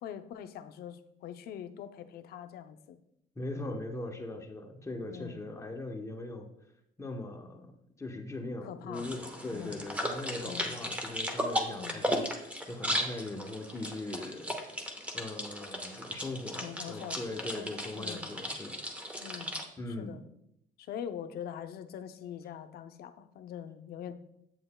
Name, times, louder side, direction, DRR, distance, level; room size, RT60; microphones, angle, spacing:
voice 1, 0.0-3.0 3.5-3.8 5.1-5.4 8.6-9.1 9.5-9.9 10.4-10.8 11.7-12.1 16.6-18.3 19.2-19.6 19.9-20.2 20.8-24.1, left 9 dB, 70° left, 9 dB, 0.6 m, -43 dB
voice 2, 3.4-6.5 7.0-14.6 15.1-18.8 19.8-20.2, left 2 dB, 15° left, 3 dB, 0.9 m, -40 dB
sound 1, 8.9-19.6, equal, 10° right, 1.0 m, -36 dB
8.5 x 7.7 x 2.2 m, 0.78 s
cardioid pair, 110°, 17 cm